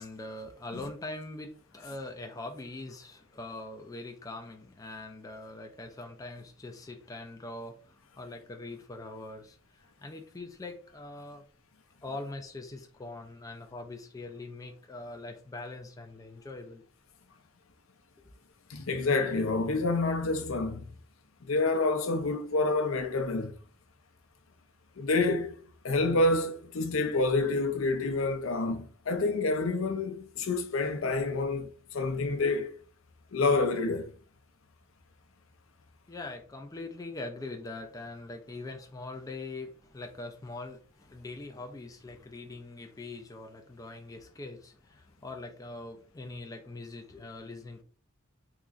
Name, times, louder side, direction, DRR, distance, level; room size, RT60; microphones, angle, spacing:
voice 1, 0.0-11.4 12.0-16.8 36.1-47.8, left 2 dB, 15° left, 0.4 m, -42 dB
voice 2, 18.7-21.0 21.4-23.5 25.0-32.7 33.3-34.1, left 3 dB, 70° left, 0.6 m, -28 dB
3.7 x 2.9 x 2.4 m
head